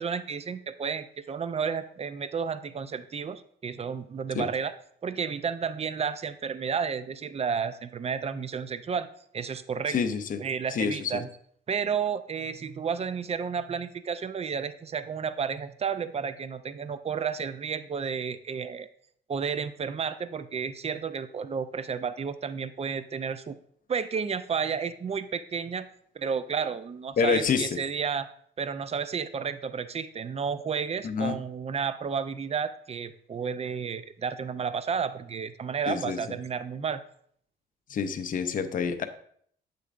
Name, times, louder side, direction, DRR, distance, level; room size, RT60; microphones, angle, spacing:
voice 1, 0.0-4.7 5.0-9.1 9.3-10.0 10.4-11.3 11.7-18.9 19.3-23.5 23.9-25.9 26.1-28.3 28.6-37.0, right 6 dB, 30° right, 12 dB, 0.5 m, -32 dB
voice 2, 9.9-10.4 10.7-11.2 27.2-27.8 31.0-31.4 35.9-36.2 37.9-39.1, left 6 dB, 45° left, 8 dB, 0.6 m, -27 dB
7.7 x 6.6 x 2.5 m, 0.63 s
cardioid pair, 90°, 20 cm